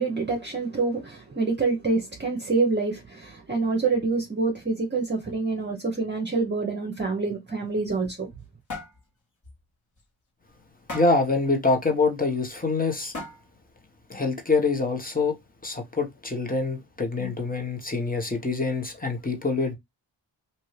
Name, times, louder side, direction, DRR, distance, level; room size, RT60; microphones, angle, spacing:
voice 1, 0.0-8.3, right 3 dB, 20° right, 1.0 m, -26 dB
sound 1, 7.7-8.4 8.7-9.0 9.4-9.6 10.0-10.1 10.9-11.3 12.4-12.5 13.1-13.6, left 2 dB, 40° left, 1.6 m, -37 dB
voice 2, 10.9-13.1 14.1-15.3 15.6-19.7, left 3 dB, 20° left, 1.2 m, -25 dB
2.8 x 2.7 x 3.3 m
cardioid pair, 55°, 48 cm